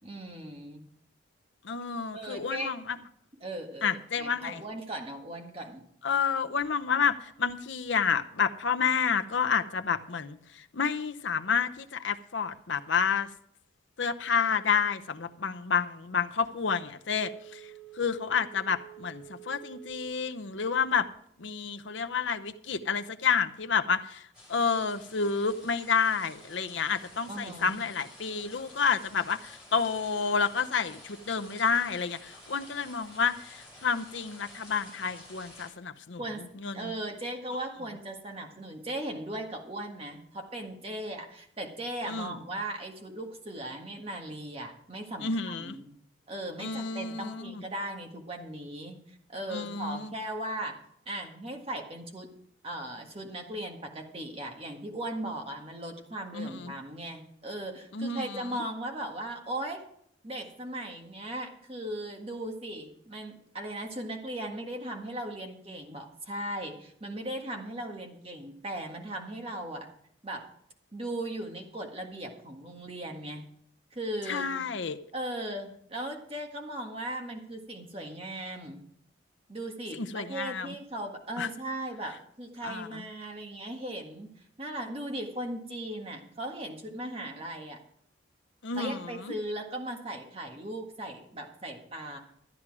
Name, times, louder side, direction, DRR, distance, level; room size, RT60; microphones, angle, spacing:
voice 1, 0.0-0.8 2.1-2.7 3.4-5.8 27.3-27.8 36.2-36.5 36.7-45.9 46.3-50.8 51.1-52.3 52.6-59.8 60.2-69.9 70.2-70.5 70.9-73.5 73.9-74.6 75.1-78.8 79.5-87.8 88.8-92.2, right 1 dB, 30° right, 2 dB, 1.7 m, -38 dB
voice 2, 1.6-3.0 3.8-4.6 6.0-13.3 14.0-21.1 21.4-37.0 42.1-42.4 45.2-45.8 46.6-47.6 49.5-50.1 56.3-56.7 57.9-58.6 74.3-75.0 79.9-80.7 81.4-81.5 82.6-83.0 88.6-89.3, left 6 dB, 70° left, 9 dB, 0.7 m, -30 dB
Telephone, 17.2-20.3 20.7-20.8, right 14 dB, 90° right, 3.4 m, -49 dB
sound 1, 24.3-35.7, left 1 dB, 5° right, 5.5 m, -52 dB
13.0 x 9.8 x 4.8 m, 0.69 s
head